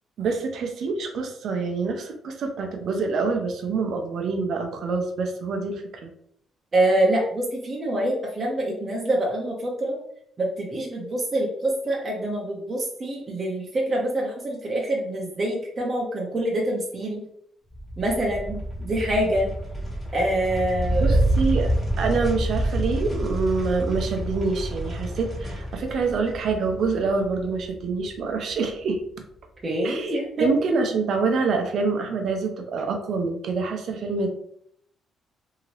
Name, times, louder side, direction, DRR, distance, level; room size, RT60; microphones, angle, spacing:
voice 1, 0.2-6.1 21.0-29.0 29.8-34.3, right 4 dB, 65° right, 4 dB, 0.6 m, -26 dB
voice 2, 6.7-10.0 10.4-17.2 18.0-19.5 20.1-21.2 29.6-30.5, right 1 dB, 35° right, -2 dB, 0.8 m, -25 dB
sound 1, 17.7-28.3, right 1 dB, 25° left, 1.2 m, -28 dB
2.8 x 2.8 x 2.9 m, 0.70 s
cardioid pair, 90°, 0 cm